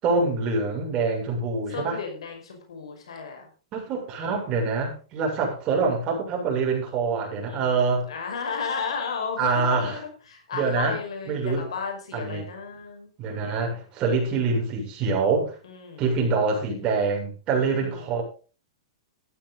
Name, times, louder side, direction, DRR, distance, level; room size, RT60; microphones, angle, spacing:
voice 1, 0.0-2.0 3.7-8.1 9.4-10.0 10.5-11.0 11.3-11.7 12.1-12.5 13.2-15.5 16.0-18.2, right 4 dB, 35° right, 1 dB, 7.1 m, -25 dB
voice 2, 1.7-3.5 7.5-13.1 15.6-16.0 17.5-18.1, left 5 dB, 80° left, 4 dB, 5.2 m, -34 dB
14.5 x 12.0 x 4.0 m, 0.35 s
hypercardioid pair, 125°, 3 cm